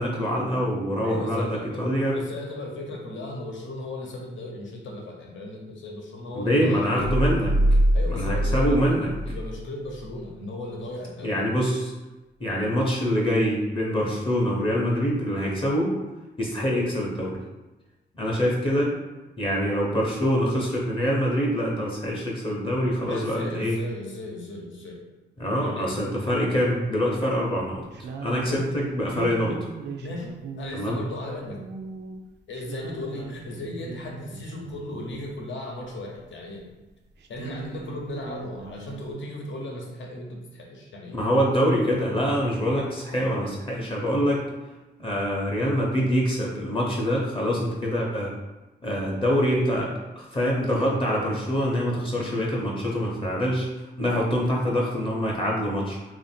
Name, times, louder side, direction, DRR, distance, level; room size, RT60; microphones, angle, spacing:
voice 1, 0.0-2.2 6.3-7.5 8.1-9.1 11.2-11.9 12.4-15.9 16.4-17.4 18.2-18.9 19.4-23.8 25.4-29.6 30.7-31.0 41.1-44.4 45.0-48.3 48.8-53.7 54.0-56.0, equal, 30° left, -3 dB, 0.6 m, -25 dB
voice 2, 1.0-1.8 2.1-7.2 7.9-11.4 23.0-25.0 25.6-26.0 28.4-28.7 30.0-31.6 32.5-36.7 37.3-41.2, left 1 dB, 80° left, 0 dB, 0.9 m, -36 dB
sound 1, 7.0-9.6 9.9-10.0, equal, 90° right, 0.8 m, -23 dB
sound 2, 26.3-26.9 27.3-27.5 27.9-35.4 36.2-36.3 36.6-36.7 36.9-39.1, right 5 dB, 65° right, 0.4 m, -39 dB
3.2 x 2.5 x 4.2 m, 1.1 s
wide cardioid pair, 165°, 19 cm